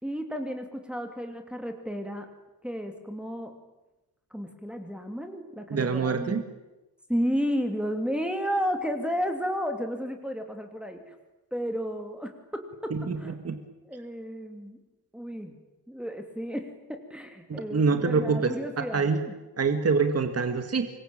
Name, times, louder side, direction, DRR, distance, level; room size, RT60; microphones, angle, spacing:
voice 1, 0.0-2.3 2.6-3.6 4.3-6.4 7.1-11.1 11.5-12.9 13.2-13.3 13.9-14.8 15.1-15.5 15.9-19.4, equal, 5° right, 4 dB, 3.0 m, -32 dB
voice 2, 5.7-6.4 12.9-13.6 17.5-19.2 19.6-20.9, right 5 dB, 40° right, 7 dB, 1.9 m, -26 dB
25.5 x 22.5 x 8.9 m, 1.0 s
wide cardioid pair, 140°, 38 cm